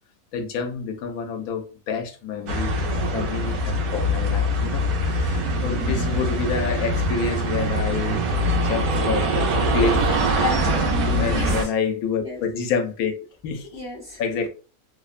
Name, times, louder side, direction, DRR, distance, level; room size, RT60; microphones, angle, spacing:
voice 1, 0.3-2.8 3.1-8.3 8.5-9.5 9.7-10.2 11.1-13.1 13.4-13.8 14.2-14.5, left 5 dB, 80° left, 1.0 m, -28 dB
sound 1, 2.5-11.6, equal, 90° right, 1.1 m, -23 dB
voice 2, 10.4-11.7 12.2-12.4 13.7-14.2, left 3 dB, 30° right, 0.7 m, -30 dB
2.9 x 2.0 x 2.3 m
omnidirectional pair, 1.5 m